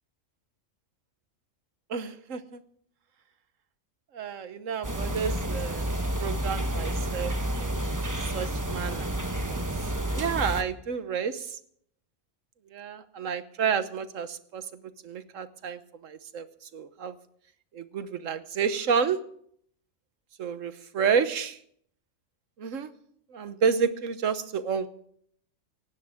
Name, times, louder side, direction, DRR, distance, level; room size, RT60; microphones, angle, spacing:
voice 1, 1.9-2.6 4.1-7.8 8.2-9.1 9.5-9.6 10.1-11.6 12.7-14.6 15.0-17.2 17.7-19.2 20.4-21.6 22.6-22.9 23.3-24.9, right 6 dB, 80° right, 12 dB, 1.4 m, -30 dB
sound 1, 4.8-10.6, right 1 dB, 15° right, 1.0 m, -30 dB
19.0 x 16.0 x 3.6 m, 0.64 s
omnidirectional pair, 1.3 m